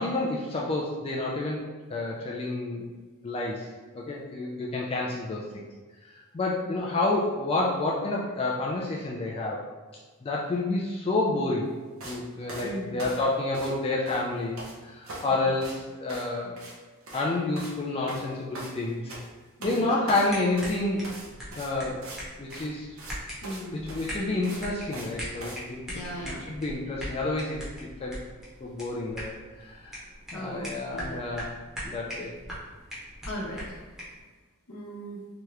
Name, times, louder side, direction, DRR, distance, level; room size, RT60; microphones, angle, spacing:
voice 1, 0.0-1.6 1.9-2.8 3.2-3.7 3.9-5.6 6.1-9.7 10.2-11.7 12.0-16.5 17.1-19.2 19.6-21.2 21.6-22.0 22.4-22.9 23.7-28.2 28.6-29.3 29.6-30.0 30.3-31.5 31.8-32.3, left 2 dB, 25° left, -3 dB, 0.3 m, -29 dB
sound 1, 12.0-12.2 12.5-13.8 14.0-14.7 15.0-15.3 15.6-15.8 16.1-16.3 16.6-16.8 17.0-17.3 17.6-17.8 18.1-19.3 19.6-19.8 20.1-22.2 22.5-22.7 23.0-23.1 23.4-23.6 23.9-25.1 25.4-25.6, right 1 dB, 70° right, 0.8 m, -41 dB
voice 2, 12.6-13.2 15.3-15.6 19.6-19.9 23.4-24.0 25.9-26.5 30.3-31.2 33.2-33.9 34.7-35.2, equal, 70° left, -3 dB, 0.8 m, -38 dB
sound 2, 20.3-34.2, equal, ahead, 0.8 m, -41 dB
2.9 x 2.3 x 3.2 m, 1.4 s
head